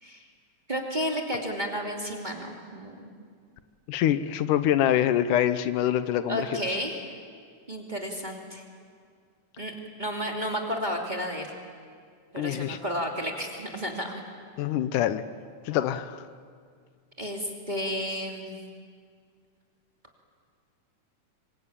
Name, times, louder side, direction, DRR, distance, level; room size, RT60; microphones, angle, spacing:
voice 1, 0.7-3.1 6.3-7.1 7.7-8.6 9.6-11.5 12.3-14.2 15.1-15.2 17.2-18.6, equal, 15° right, 0 dB, 2.5 m, -32 dB
voice 2, 3.9-6.6 12.4-12.8 14.6-15.2 15.7-16.2, left 11 dB, 85° left, 12 dB, 2.4 m, -25 dB
26.5 x 25.0 x 8.8 m, 2.1 s
omnidirectional pair, 3.6 m